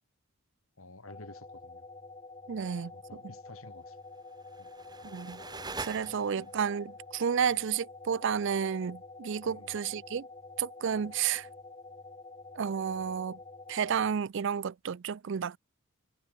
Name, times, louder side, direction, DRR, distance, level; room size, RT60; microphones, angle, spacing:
voice 1, 0.8-1.9 2.6-4.0 4.6-4.7 6.1-6.5 9.5-9.8, left 2 dB, 75° left, 3.8 m, -52 dB
sound 1, 1.0-14.1, left 3 dB, 25° left, 3.0 m, -48 dB
voice 2, 2.5-2.9 5.0-5.4 5.8-10.3 10.6-11.5 12.6-13.4 13.7-15.6, right 7 dB, 55° right, 0.4 m, -31 dB
sound 2, 4.3-6.7, right 3 dB, 20° right, 1.7 m, -43 dB
head